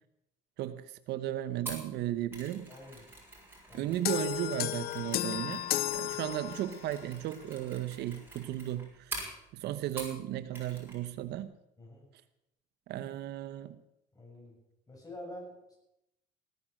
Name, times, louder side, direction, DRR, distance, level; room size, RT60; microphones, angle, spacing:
voice 1, 0.6-2.7 3.7-5.6 5.9-11.5 12.9-13.8, right 12 dB, 80° right, 13 dB, 0.9 m, -35 dB
Mechanisms, 1.7-10.2 10.5-11.0 11.3-11.4, right 2 dB, 10° right, 5.6 m, -46 dB
voice 2, 2.7-3.0 3.7-3.9 11.8-12.1 14.1-14.5 14.9-15.8, left 1 dB, 20° left, -1 dB, 7.9 m, -47 dB
sound 1, 4.0-6.9, left 13 dB, 65° left, 0.7 m, -33 dB
17.5 x 9.8 x 7.6 m, 0.86 s
cardioid pair, 110°, 17 cm